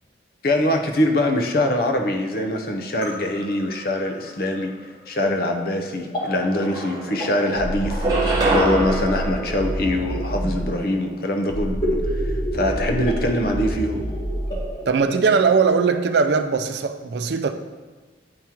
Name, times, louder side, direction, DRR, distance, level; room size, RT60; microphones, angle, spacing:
voice 1, 0.4-4.7 5.1-8.3 8.5-14.0, left 1 dB, 55° left, 0.7 m, -23 dB
sound 1, 1.9-15.7, equal, 25° left, 1.3 m, -34 dB
sound 2, 6.2-6.3 6.6-7.4 7.9-10.5, right 2 dB, 25° right, 1.1 m, -25 dB
sound 3, 7.6-10.8 11.5-14.8, equal, 10° left, 0.7 m, -28 dB
voice 2, 14.9-17.5, right 5 dB, 70° right, 0.4 m, -20 dB
9.5 x 3.6 x 2.9 m
head